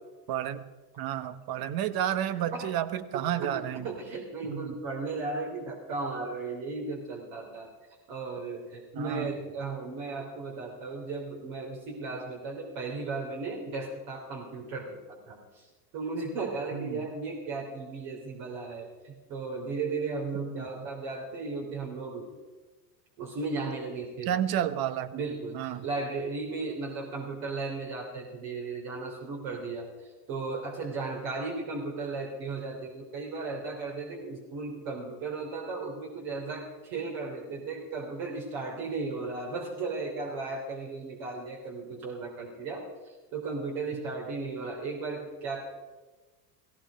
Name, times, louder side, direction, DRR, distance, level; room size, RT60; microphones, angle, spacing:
voice 1, 0.3-0.7 1.0-3.9 4.5-4.7 8.9-9.3 16.7-17.1 20.3-20.9 24.3-25.2 25.5-25.8 44.0-44.1, right 11 dB, 45° right, 14 dB, 1.1 m, -31 dB
voice 2, 3.4-7.7 8.1-22.3 23.2-24.3 25.1-45.6, right 3 dB, 65° right, 0 dB, 3.4 m, -36 dB
17.0 x 16.5 x 5.1 m, 1.2 s
supercardioid pair, 95°, 49 cm